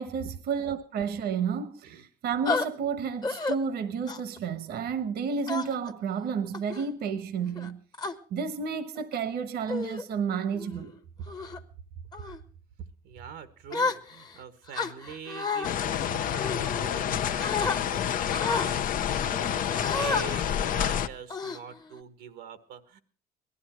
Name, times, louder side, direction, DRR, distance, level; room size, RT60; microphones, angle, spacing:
voice 1, 0.0-7.8 8.3-10.9, right 6 dB, 70° right, 1.2 m, -31 dB
sound 1, 2.5-2.7 3.2-3.6 4.1-4.4 5.5-5.9 6.5-6.8 7.6-8.1 9.0-9.2 9.7-10.0 10.5-10.8 11.3-11.6 12.1-12.4 13.7-14.3 14.7-15.7 16.3-17.1 17.4-17.8 18.3-18.7 19.7-20.2 20.7-20.9 21.3-22.0, left 4 dB, 25° left, 1.1 m, -31 dB
voice 2, 12.8-23.0, right 7 dB, 85° right, 1.3 m, -44 dB
sound 2, 15.6-21.1, left 9 dB, 55° left, 0.7 m, -28 dB
18.5 x 12.5 x 4.4 m
cardioid pair, 110°, 17 cm